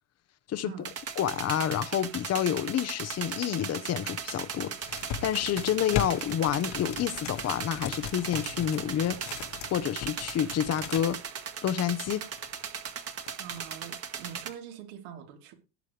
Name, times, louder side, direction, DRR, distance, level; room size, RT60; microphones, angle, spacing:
sound 1, 0.8-14.5, right 7 dB, 30° right, 1.8 m, -38 dB
voice 1, 1.2-9.2 9.7-11.2 11.6-12.2, left 10 dB, 30° left, 1.0 m, -29 dB
sound 2, 4.8-11.2 12.1-12.6 13.1-13.7, left 9 dB, 55° left, 1.6 m, -39 dB
voice 2, 13.4-15.5, right 9 dB, 75° right, 3.7 m, -44 dB
18.0 x 7.5 x 3.3 m
cardioid pair, 135°, 50 cm